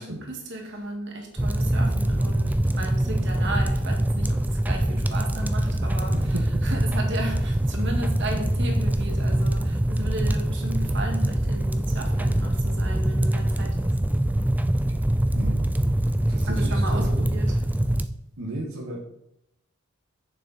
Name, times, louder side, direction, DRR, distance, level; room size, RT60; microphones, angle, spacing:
voice 1, 0.0-6.4 6.6-14.0 16.5-17.6, right 1 dB, 50° right, 2 dB, 1.9 m, -35 dB
sound 1, 1.4-18.1, right 1 dB, 5° right, 0.3 m, -24 dB
voice 2, 6.1-6.5 15.3-15.7 16.3-17.3 18.4-19.0, right 1 dB, 70° right, 0 dB, 1.6 m, -34 dB
9.0 x 6.9 x 4.2 m, 0.80 s
head